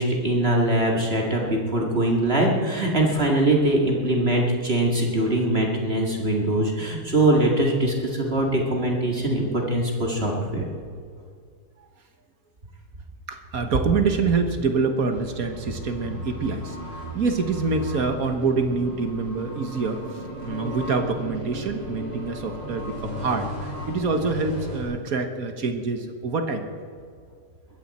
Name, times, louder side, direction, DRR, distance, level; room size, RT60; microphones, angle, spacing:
voice 1, 0.0-10.7, right 1 dB, 40° right, -1 dB, 2.2 m, -22 dB
voice 2, 13.3-16.8 17.1-20.0 20.4-26.7, right 4 dB, 60° right, 6 dB, 1.6 m, -26 dB
sound 1, 15.1-24.8, equal, 90° right, 6.6 m, -36 dB
21.0 x 15.5 x 4.3 m, 2.1 s
omnidirectional pair, 1.7 m